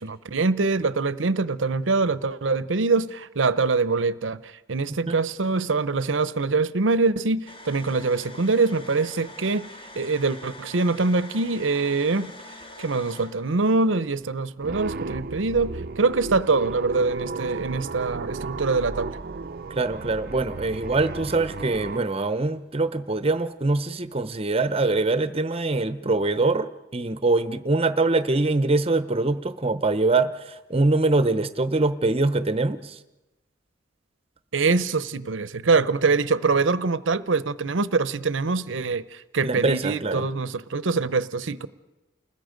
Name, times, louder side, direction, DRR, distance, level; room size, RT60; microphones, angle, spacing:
voice 1, 0.0-9.7 9.9-12.3 12.8-19.1 34.5-41.7, right 3 dB, 85° right, 0.8 m, -24 dB
sound 1, 7.5-15.1 15.6-15.7 17.2-17.7 18.8-22.9 23.2-23.5 23.7-24.9, left 1 dB, 30° left, 2.1 m, -46 dB
sound 2, 14.6-22.0, right 3 dB, 55° right, 0.6 m, -34 dB
voice 2, 19.7-33.0 39.4-40.2, right 3 dB, 30° right, 0.9 m, -23 dB
29.5 x 20.5 x 5.2 m
head